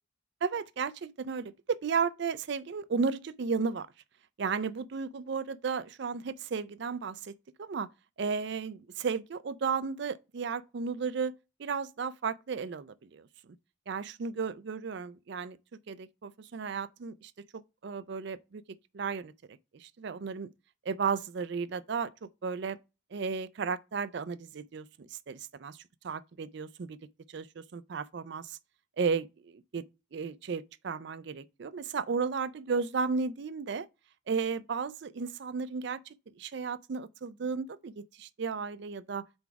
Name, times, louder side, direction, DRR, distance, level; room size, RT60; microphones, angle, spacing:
voice 1, 0.4-3.9 4.4-7.9 8.2-11.3 11.6-13.3 13.9-15.6 15.9-19.3 19.7-20.5 20.9-22.8 23.1-25.8 26.0-27.0 27.3-28.6 29.0-29.8 30.1-33.9 34.3-39.3, right 5 dB, 55° right, 0.4 m, -34 dB
4.7 x 4.0 x 5.7 m
head